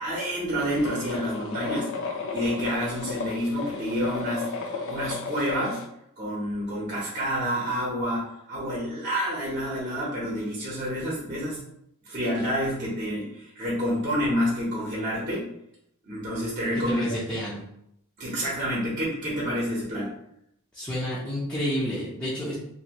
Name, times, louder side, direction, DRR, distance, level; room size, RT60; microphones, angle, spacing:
voice 1, 0.0-1.9 2.3-4.4 4.8-5.8 6.2-11.6 12.0-15.5 16.1-16.9 18.2-20.1, equal, 35° right, -5 dB, 0.8 m, -28 dB
sound 1, 0.7-5.8, left 4 dB, 60° left, 0.5 m, -34 dB
voice 2, 16.7-17.6 20.7-22.5, equal, 5° left, -9 dB, 0.5 m, -30 dB
2.7 x 2.5 x 2.9 m, 0.75 s
head